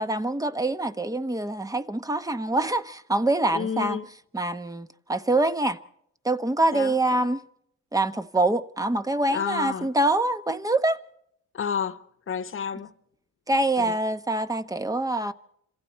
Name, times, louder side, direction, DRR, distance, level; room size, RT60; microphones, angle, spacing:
voice 1, 0.0-4.0 4.3-5.8 6.2-7.4 7.9-11.0 13.5-15.3, right 2 dB, 10° right, 0.9 m, -25 dB
voice 2, 3.5-4.1 6.7-7.2 9.3-9.9 11.5-12.0 12.3-12.9 13.8-13.9, left 7 dB, 45° left, 1.2 m, -30 dB
28.0 x 26.0 x 4.5 m
cardioid pair, 90°, 30 cm